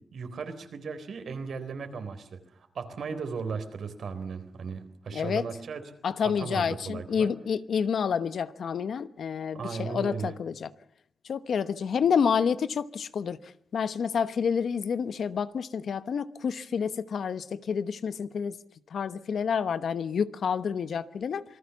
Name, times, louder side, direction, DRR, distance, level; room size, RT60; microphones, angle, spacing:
voice 1, 0.1-5.8 6.4-7.3 9.5-10.3, right 5 dB, 70° right, 3.8 m, -36 dB
voice 2, 5.1-5.5 6.0-10.7 11.2-13.4 13.7-18.6 18.9-21.4, left 6 dB, 75° left, 1.0 m, -29 dB
27.0 x 20.0 x 7.2 m
wide cardioid pair, 100°, 0 cm